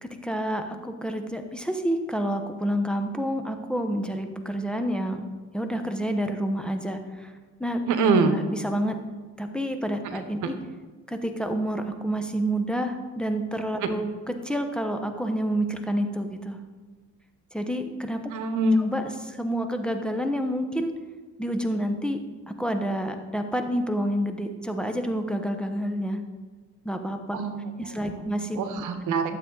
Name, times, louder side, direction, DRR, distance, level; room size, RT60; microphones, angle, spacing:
voice 1, 0.0-5.3 5.5-7.3 7.6-7.8 8.3-9.0 9.4-10.6 11.1-16.6 17.5-18.2 18.9-20.9 21.4-22.2 22.5-26.2 26.8-27.4 27.8-28.8, equal, 5° left, 5 dB, 1.0 m, -29 dB
voice 2, 7.9-8.4 10.4-10.5 13.8-13.9 18.3-18.8 27.3-27.6 27.9-28.3 28.6-29.3, right 3 dB, 85° right, 8 dB, 1.0 m, -24 dB
12.0 x 7.6 x 3.9 m, 1.3 s
cardioid pair, 90°, 30 cm